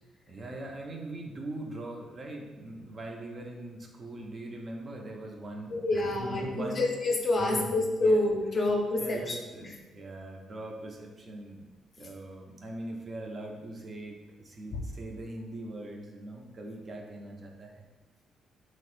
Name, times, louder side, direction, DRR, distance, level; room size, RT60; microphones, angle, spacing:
voice 1, 0.3-6.9 7.4-7.7 8.0-8.2 9.0-11.7 12.0-17.8, right 1 dB, 40° right, 1 dB, 0.4 m, -41 dB
voice 2, 5.7-9.7 14.7-14.8, left 2 dB, 40° left, 1 dB, 0.5 m, -28 dB
3.0 x 2.0 x 3.0 m, 1.2 s
cardioid pair, 90°, 0 cm